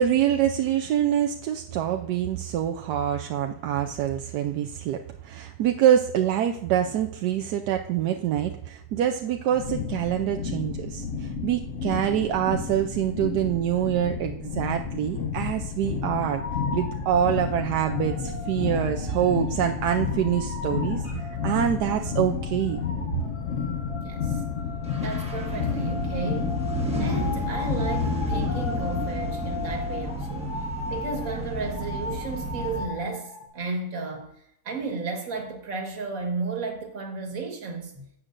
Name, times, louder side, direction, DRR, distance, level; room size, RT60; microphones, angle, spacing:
voice 1, 0.0-16.4 16.7-22.8, right 10 dB, 85° right, 1.2 m, -25 dB
sound 1, 9.5-29.0, left 6 dB, 55° left, 1.1 m, -31 dB
sound 2, 16.2-33.5, left 3 dB, 35° left, 3.1 m, -38 dB
voice 2, 24.0-24.4 25.0-26.7 27.0-30.5 30.9-34.3 34.7-38.0, right 4 dB, 60° right, 1.9 m, -33 dB
sound 3, 24.9-32.9, equal, 5° right, 1.2 m, -31 dB
12.0 x 7.9 x 2.5 m
omnidirectional pair, 1.7 m